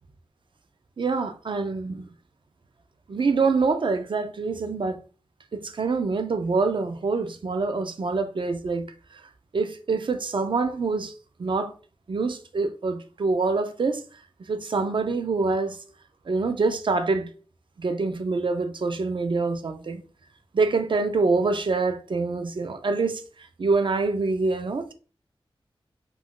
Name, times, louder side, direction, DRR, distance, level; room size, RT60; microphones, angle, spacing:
voice 1, 1.0-2.1 3.1-5.0 5.5-8.9 9.5-11.1 11.4-11.7 12.1-14.0 14.5-15.8 16.3-17.3 17.8-20.0 20.5-24.9, right 4 dB, 60° right, 0.4 m, -25 dB
2.4 x 2.1 x 3.6 m
wide cardioid pair, 65°, 10 cm